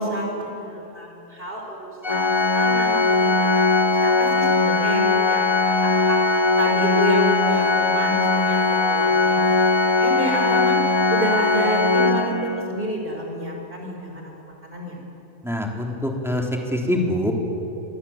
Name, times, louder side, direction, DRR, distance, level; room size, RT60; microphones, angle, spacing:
voice 1, 0.0-3.7 4.0-6.2 6.6-9.6 10.0-10.8 11.1-15.0, right 1 dB, 45° right, 0 dB, 5.8 m, -29 dB
Organ, 2.0-12.9, left 3 dB, 25° left, 0.8 m, -20 dB
voice 2, 15.4-17.3, left 1 dB, ahead, 0 dB, 3.6 m, -24 dB
28.0 x 23.5 x 8.9 m, 2.9 s
omnidirectional pair, 1.3 m